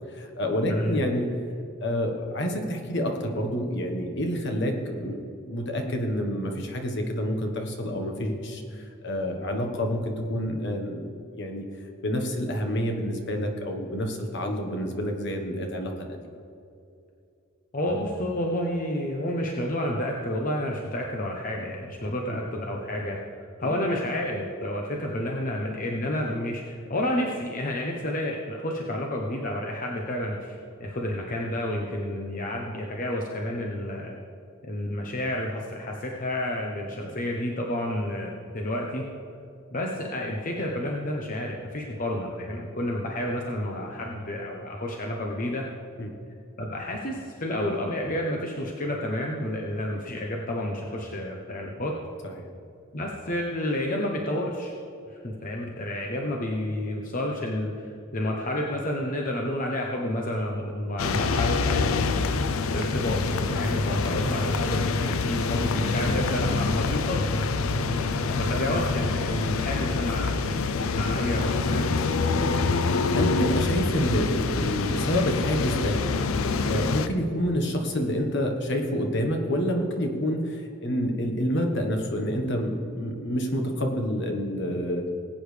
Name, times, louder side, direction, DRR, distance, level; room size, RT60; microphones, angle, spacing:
voice 1, 0.1-1.3 1.8-5.2 5.4-11.0 11.3-11.6 12.0-16.2 22.3-22.4 23.6-23.7 37.0-37.1 46.0-46.1 52.2-52.4 63.9-64.1 72.6-76.2 76.7-85.1, equal, 60° left, 3 dB, 1.4 m, -28 dB
voice 2, 0.7-1.1 17.7-23.2 23.6-34.2 34.7-39.0 39.7-45.7 46.6-52.0 52.9-54.7 55.1-62.1 62.7-63.2 63.5-67.4 67.8-70.4 70.9-71.9, left 1 dB, 40° left, 0 dB, 1.0 m, -30 dB
sound 1, 61.0-77.1, left 4 dB, 90° left, 0.6 m, -26 dB
19.5 x 8.7 x 3.4 m, 2.5 s
head